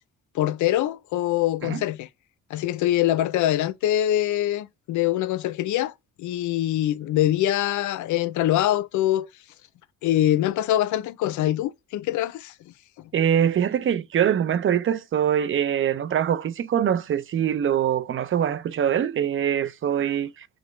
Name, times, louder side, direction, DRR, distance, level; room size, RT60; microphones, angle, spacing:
voice 1, 0.3-2.1 2.5-5.9 6.2-9.3 10.0-13.1, left 13 dB, 80° left, 0.5 m, -24 dB
voice 2, 13.1-20.5, right 9 dB, 45° right, 0.5 m, -23 dB
6.1 x 2.1 x 3.1 m
cardioid pair, 90°, 30 cm